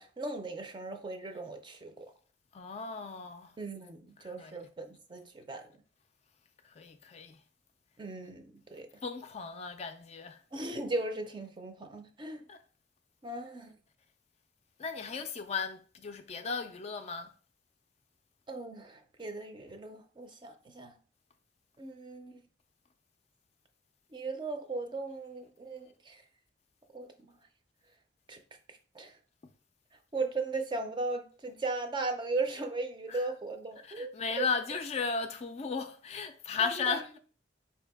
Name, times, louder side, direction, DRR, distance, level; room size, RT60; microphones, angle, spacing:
voice 1, 0.0-2.1 3.6-5.6 8.0-8.9 10.5-12.4 13.2-13.8 18.5-20.9 21.8-22.4 24.1-26.2 26.9-27.4 28.3-28.4 28.9-29.2 30.1-34.1 34.4-34.5 36.6-37.2, right 2 dB, 25° right, 0.5 m, -37 dB
voice 2, 2.5-3.5 4.2-4.6 6.8-7.4 9.0-10.4 12.5-12.6 14.8-17.3 33.1-33.3 33.8-37.2, left 5 dB, 35° left, 0.4 m, -35 dB
4.5 x 2.7 x 3.4 m
head